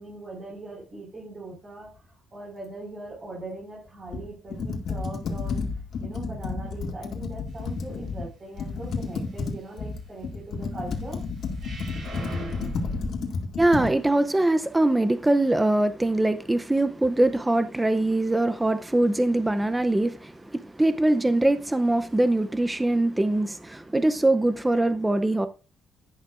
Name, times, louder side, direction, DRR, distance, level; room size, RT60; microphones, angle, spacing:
voice 1, 0.0-5.6 6.0-11.2, right 2 dB, 25° right, 5.0 m, -40 dB
Computer keyboard, 4.1-8.3 8.6-13.9, left 4 dB, 55° left, 2.1 m, -31 dB
sound 1, 11.6-13.1, right 1 dB, 55° right, 7.0 m, -37 dB
voice 2, 13.6-25.5, right 1 dB, 10° right, 0.6 m, -23 dB
11.5 x 11.0 x 2.5 m
cardioid pair, 165°, 0 cm